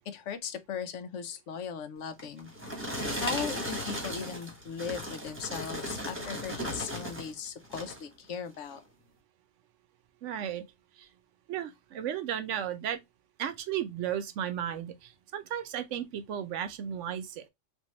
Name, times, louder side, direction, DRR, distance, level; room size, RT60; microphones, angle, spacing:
voice 1, 0.1-2.5 3.1-8.8, left 7 dB, 75° left, 0.9 m, -38 dB
sound 1, 2.2-7.3 7.6-8.1 8.6-8.8, equal, 10° right, 1.1 m, -36 dB
voice 2, 10.2-10.7 11.0-11.1 11.5-13.0 13.4-17.5, right 10 dB, 75° right, 0.9 m, -34 dB
3.5 x 2.5 x 2.9 m
omnidirectional pair, 1.3 m